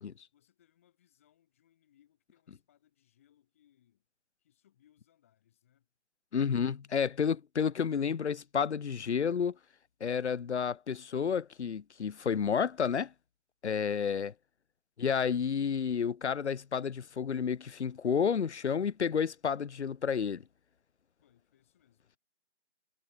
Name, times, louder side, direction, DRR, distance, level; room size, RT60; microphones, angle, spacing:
voice 1, 0.3-4.1 4.4-5.9 21.2-22.2, left 11 dB, 10° left, 6.7 m, -69 dB
voice 2, 6.3-9.5 10.0-13.1 13.6-14.3 15.0-20.4, left 7 dB, 70° left, 0.5 m, -30 dB
figure-of-eight pair, 165°, 36 cm